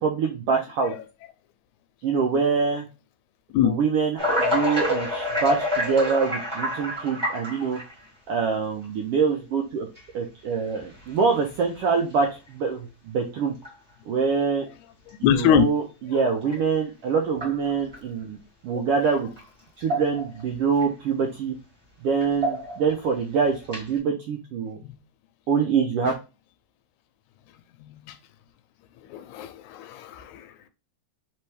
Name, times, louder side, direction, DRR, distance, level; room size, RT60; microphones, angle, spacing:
voice 1, 0.0-0.9 2.0-2.9 3.6-7.8 8.3-9.9 10.1-13.5 14.1-14.7 15.2-18.4 18.6-19.3 19.8-21.5 22.0-24.8 25.5-26.1, right 5 dB, 85° right, 1.3 m, -25 dB
sound 1, 4.2-8.0 8.8-8.9 9.9-10.0 10.8-11.1 11.5-11.6 12.1-12.3 13.6-13.7 16.5-16.6 17.3-18.0 19.4-19.5 19.8-20.4 20.8-20.9 22.2-22.9 23.6-24.0, equal, 10° right, 1.3 m, -28 dB
voice 2, 15.2-15.7 24.8-25.0 27.8-28.2 29.1-30.7, left 9 dB, 85° left, 1.9 m, -23 dB
4.4 x 3.4 x 3.2 m
omnidirectional pair, 3.3 m